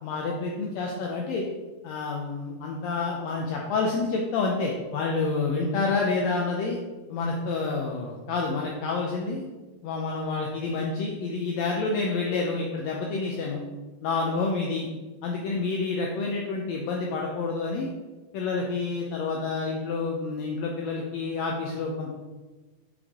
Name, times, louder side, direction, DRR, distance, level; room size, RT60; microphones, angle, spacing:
voice 1, 0.0-1.5 1.8-6.8 7.1-9.5 9.8-13.6 14.0-14.9 15.2-17.9 18.3-22.1, left 3 dB, 80° left, -1 dB, 1.6 m, -28 dB
5.3 x 5.0 x 3.5 m, 1.2 s
omnidirectional pair, 3.6 m